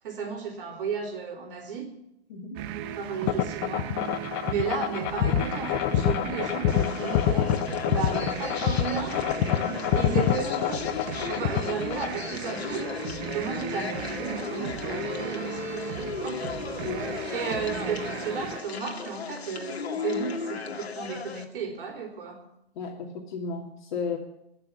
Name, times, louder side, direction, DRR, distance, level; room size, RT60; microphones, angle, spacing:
voice 1, 0.0-1.9 2.7-3.9 4.5-7.5 7.9-9.2 9.9-10.8 11.3-16.4 17.3-22.4, right 5 dB, 60° right, 1 dB, 3.8 m, -34 dB
sound 1, 2.5-18.6, right 10 dB, 20° right, 0.6 m, -37 dB
sound 2, 3.3-12.2, left 11 dB, 20° left, 0.5 m, -26 dB
sound 3, 6.7-21.4, left 5 dB, 85° left, 2.0 m, -36 dB
voice 2, 9.5-9.8 11.3-11.4 16.8-17.1 22.8-24.2, left 4 dB, 50° left, 1 dB, 2.6 m, -34 dB
20.5 x 6.9 x 9.7 m, 0.82 s
hypercardioid pair, 150°, 31 cm